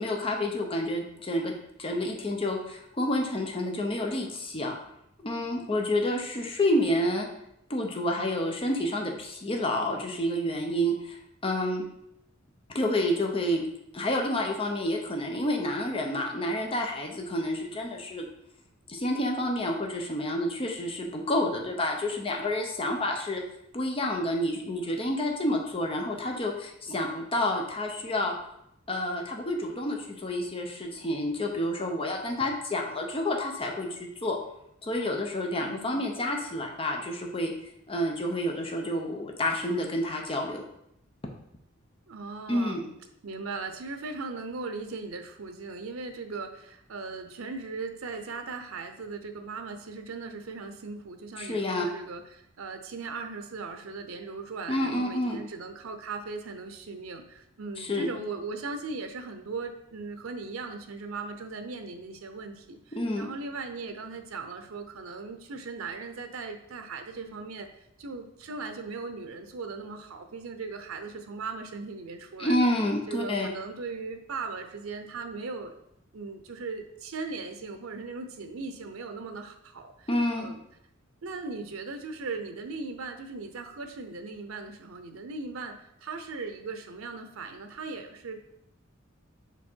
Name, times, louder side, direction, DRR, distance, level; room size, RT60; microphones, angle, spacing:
voice 1, 0.0-1.5 1.8-4.8 5.2-7.3 7.7-11.8 12.7-13.6 13.9-18.3 18.9-23.4 23.7-28.3 28.9-34.4 34.8-37.5 37.9-40.6 42.5-42.8 51.4-51.9 54.7-55.4 57.8-58.1 62.9-63.3 72.4-73.5 80.1-80.5, left 1 dB, 25° left, 1 dB, 0.8 m, -29 dB
voice 2, 35.6-36.1 42.1-42.9 43.2-67.7 68.0-72.7 73.1-75.7 76.1-80.1 80.4-80.6 81.2-88.4, right 4 dB, 85° right, 7 dB, 0.7 m, -38 dB
6.0 x 3.6 x 4.5 m, 0.77 s
head